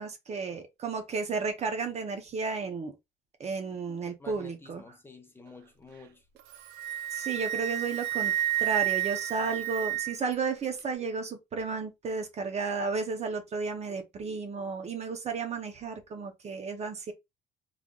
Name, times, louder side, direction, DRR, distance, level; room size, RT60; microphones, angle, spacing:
voice 1, 0.0-2.9 3.4-4.8 7.1-8.3 8.6-17.1, right 4 dB, 40° right, 0.8 m, -33 dB
voice 2, 4.2-6.2, left 3 dB, 15° left, 0.7 m, -50 dB
Wind instrument woodwind instrument, 6.4-10.3, right 14 dB, 90° right, 0.5 m, -30 dB
3.8 x 3.2 x 2.3 m
cardioid pair, 110°, 17 cm